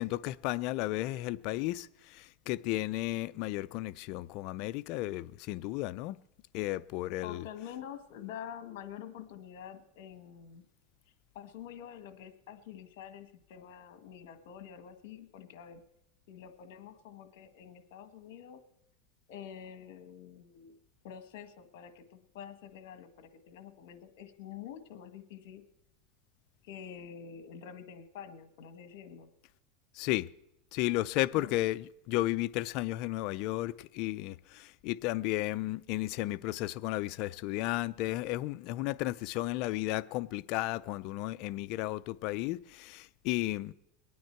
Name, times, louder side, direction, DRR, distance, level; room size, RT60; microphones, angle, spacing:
voice 1, 0.0-6.2 6.5-7.4 30.0-30.3 30.7-43.7, left 17 dB, 55° left, 0.4 m, -33 dB
voice 2, 7.2-10.7 11.1-15.8 16.3-18.6 19.3-20.8 21.0-25.6 26.6-29.3 31.3-31.5, left 9 dB, 70° left, 1.5 m, -47 dB
22.5 x 9.5 x 4.5 m
supercardioid pair, 140°, 0 cm